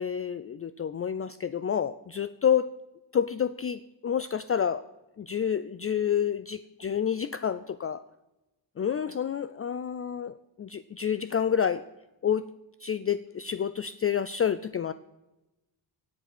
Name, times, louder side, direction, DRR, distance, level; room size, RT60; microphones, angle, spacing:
voice 1, 0.0-2.7 3.1-4.9 5.2-8.0 8.8-11.8 12.2-12.5 12.8-14.9, left 8 dB, 30° left, 13 dB, 0.4 m, -29 dB
17.0 x 7.4 x 6.0 m, 1.0 s
cardioid pair, 115°, 46 cm